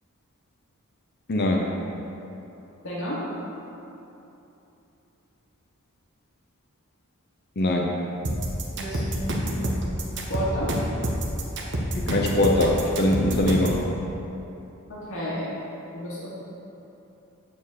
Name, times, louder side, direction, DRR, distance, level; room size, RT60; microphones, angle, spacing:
voice 1, 1.3-1.8 7.6-8.0 11.9-13.8, left 1 dB, 50° left, 0 dB, 0.8 m, -22 dB
voice 2, 2.8-3.3 8.8-10.7 14.9-15.5 15.9-16.3, equal, 65° left, -7 dB, 2.2 m, -32 dB
sound 1, 8.2-13.8, right 1 dB, 55° right, 1.2 m, -27 dB
9.5 x 4.5 x 7.6 m, 2.9 s
head